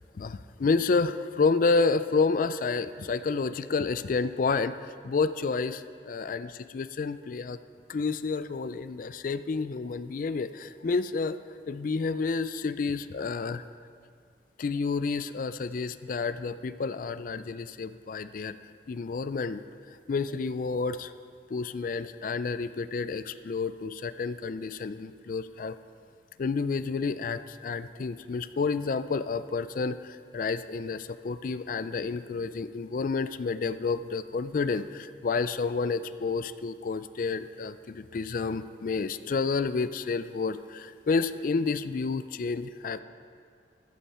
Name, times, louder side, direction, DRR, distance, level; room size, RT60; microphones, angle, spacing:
voice 1, 0.2-7.6 7.9-11.4 11.7-13.6 14.6-18.5 18.9-19.6 20.1-21.1 21.5-25.8 26.4-43.0, left 4 dB, 50° left, 13 dB, 0.4 m, -30 dB
14.0 x 8.9 x 4.3 m, 2.1 s
head